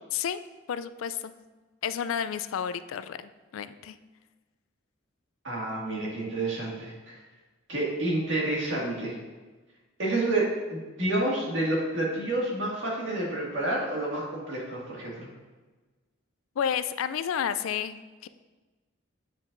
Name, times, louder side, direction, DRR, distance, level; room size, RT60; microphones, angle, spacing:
voice 1, 0.7-1.3 1.8-4.0 16.6-18.3, left 8 dB, 80° left, 13 dB, 0.3 m, -31 dB
voice 2, 5.4-7.2 7.7-9.2 10.0-15.3, right 2 dB, 65° right, -4 dB, 1.9 m, -29 dB
7.4 x 7.3 x 2.6 m, 1.3 s
head